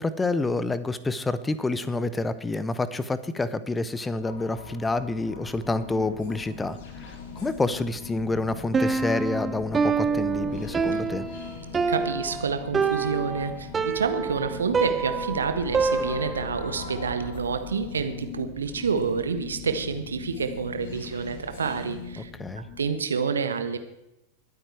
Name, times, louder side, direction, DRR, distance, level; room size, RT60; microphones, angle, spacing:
voice 1, 0.0-7.2 7.4-11.2 22.2-22.7, left 2 dB, 10° left, 15 dB, 0.9 m, -28 dB
sound 1, 4.0-22.9, left 5 dB, 50° left, 2.5 m, -40 dB
Piano, 8.7-16.6, right 5 dB, 20° right, 0.8 m, -27 dB
voice 2, 11.9-22.3 22.8-23.8, right 5 dB, 70° right, 8 dB, 1.4 m, -28 dB
21.5 x 8.9 x 4.6 m, 0.90 s
figure-of-eight pair, 90°, 0 cm